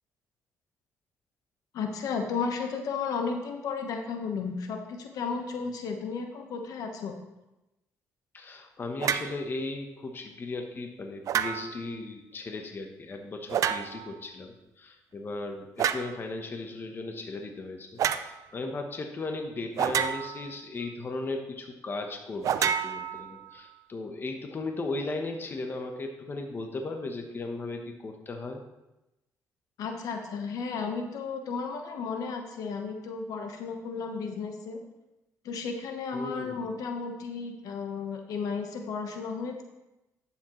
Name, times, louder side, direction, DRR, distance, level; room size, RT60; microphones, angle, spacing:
voice 1, 1.7-7.1 29.8-34.8 35.4-39.6, left 5 dB, 75° left, 4 dB, 1.2 m, -33 dB
voice 2, 8.3-28.6 36.1-36.6, left 2 dB, 35° left, 4 dB, 1.0 m, -36 dB
sound 1, 9.0-9.4 11.3-11.9 13.5-14.1 15.8-16.1 18.0-18.3 19.8-20.5 22.4-23.6, right 9 dB, 60° right, 0.5 m, -29 dB
11.5 x 7.2 x 3.1 m, 0.97 s
cardioid pair, 100°, 6 cm